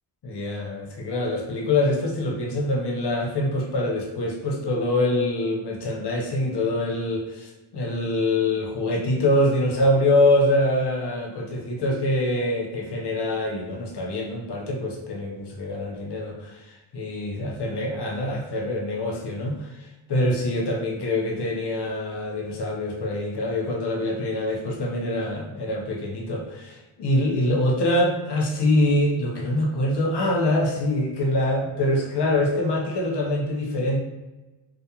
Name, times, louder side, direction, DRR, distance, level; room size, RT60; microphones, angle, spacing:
voice 1, 0.2-16.6 16.9-19.7 20.1-34.0, left 1 dB, 55° left, 0 dB, 0.7 m, -24 dB
2.3 x 2.2 x 2.8 m, 1.1 s
wide cardioid pair, 65°, 50 cm